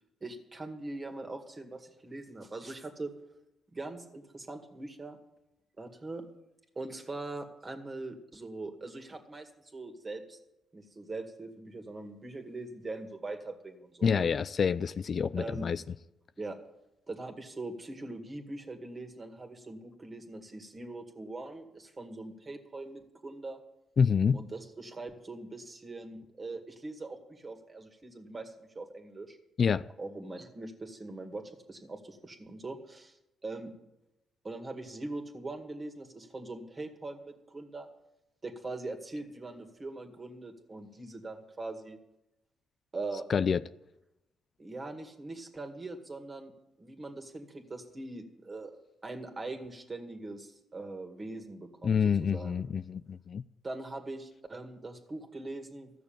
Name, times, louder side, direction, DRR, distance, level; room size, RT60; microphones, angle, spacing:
voice 1, 0.2-3.1 3.7-5.2 5.8-6.3 6.8-10.4 10.7-14.3 15.4-15.7 16.4-16.6 17.1-23.6 24.3-29.4 30.0-33.7 34.4-37.9 38.4-42.0 42.9-43.3 44.6-46.5 46.8-48.8 49.0-52.6 53.6-55.9, right 2 dB, 30° right, 2.0 m, -42 dB
voice 2, 14.0-15.8 24.0-24.4 29.6-29.8 43.3-43.6 51.8-53.4, left 6 dB, 45° left, 0.3 m, -27 dB
14.0 x 6.6 x 8.9 m
cardioid pair, 90°, 0 cm